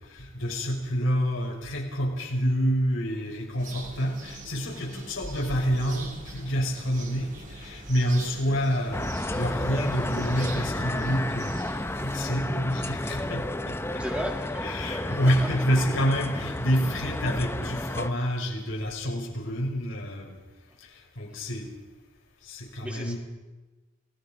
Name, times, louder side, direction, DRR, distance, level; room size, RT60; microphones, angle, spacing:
voice 1, 0.0-9.1 9.3-11.7 12.0-14.0 14.6-20.4 20.8-21.7 22.4-23.2, equal, 80° left, 0 dB, 5.8 m, -28 dB
sound 1, 3.6-12.3, right 2 dB, 40° right, 3.4 m, -43 dB
voice 2, 8.2-8.6 14.0-15.2 21.3-21.4 22.8-23.2, equal, 5° right, 3 dB, 1.9 m, -37 dB
sound 2, 8.9-18.1, left 1 dB, 10° left, 0.7 m, -32 dB
29.5 x 19.0 x 5.3 m, 1.1 s
head